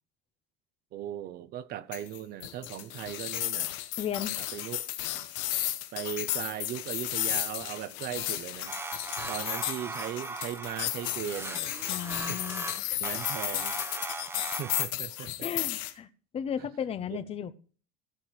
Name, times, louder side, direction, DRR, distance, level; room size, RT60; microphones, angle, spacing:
voice 1, 0.9-3.7 4.4-5.3 5.9-8.8 9.3-11.8 12.3-12.4 12.9-13.8 14.6-15.5 17.1-17.2, right 11 dB, 50° right, 1.0 m, -38 dB
sound 1, 1.9-15.9, left 14 dB, 70° left, 1.4 m, -34 dB
voice 2, 4.0-4.3 11.9-13.2 15.4-16.1 16.3-17.5, left 8 dB, 30° left, 0.8 m, -35 dB
sound 2, 8.6-14.8, right 3 dB, 10° right, 1.0 m, -39 dB
16.0 x 7.2 x 4.7 m
cardioid pair, 140°, 20 cm